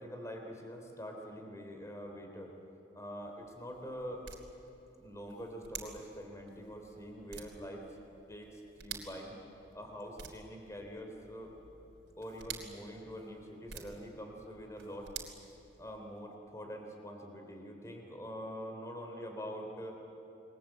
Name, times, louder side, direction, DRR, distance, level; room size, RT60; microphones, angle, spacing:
voice 1, 0.0-2.5 2.9-4.2 5.0-7.9 8.3-9.4 9.7-11.5 12.2-15.1 15.8-20.0, equal, 15° left, 2 dB, 3.4 m, -45 dB
sound 1, 3.0-16.2, right 7 dB, 90° right, 3.4 m, -51 dB
28.0 x 22.0 x 8.0 m, 2.8 s
head